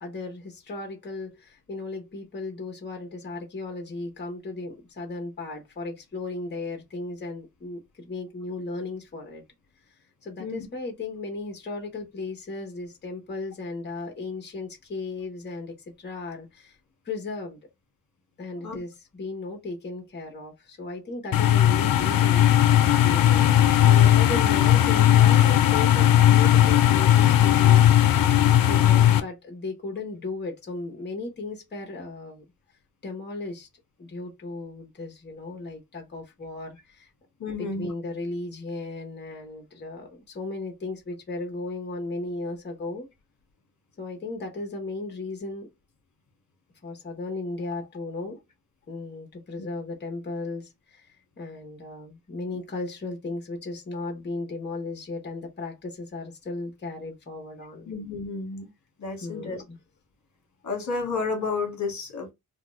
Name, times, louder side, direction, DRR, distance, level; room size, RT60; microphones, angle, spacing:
voice 1, 0.0-9.4 10.2-16.8 17.0-17.6 18.4-22.5 23.0-32.4 33.0-33.7 34.0-37.1 37.6-43.1 44.0-45.7 46.8-48.4 48.9-57.9 59.2-59.8, left 3 dB, 30° left, 1.1 m, -36 dB
sound 1, 21.3-29.2, left 11 dB, 80° left, 0.5 m, -17 dB
voice 2, 37.4-37.9 49.6-49.7 57.9-58.7 59.0-59.6 60.6-62.3, left 4 dB, 55° left, 1.4 m, -31 dB
3.8 x 2.3 x 3.1 m
wide cardioid pair, 155°, 34 cm